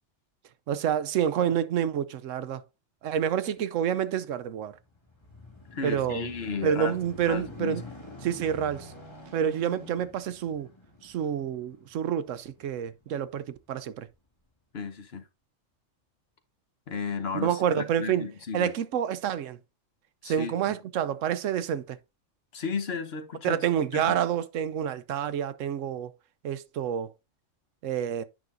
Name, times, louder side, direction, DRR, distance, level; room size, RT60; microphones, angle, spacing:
voice 1, 0.7-2.6 3.0-4.7 5.8-6.3 6.6-7.8 8.2-8.9 9.3-10.7 11.0-14.1 17.4-18.2 18.5-19.6 20.2-22.0 23.4-26.1 26.4-27.1 27.8-28.2, right 9 dB, 90° right, 1.0 m, -28 dB
sound 1, 4.6-13.4 14.0-14.2, left 2 dB, 20° left, 2.0 m, -47 dB
voice 2, 5.7-7.0 7.2-7.8 14.7-15.2 16.9-18.7 20.2-20.8 22.5-23.6 23.9-24.2, left 5 dB, 55° left, 1.2 m, -34 dB
9.0 x 6.0 x 2.5 m
omnidirectional pair, 1.3 m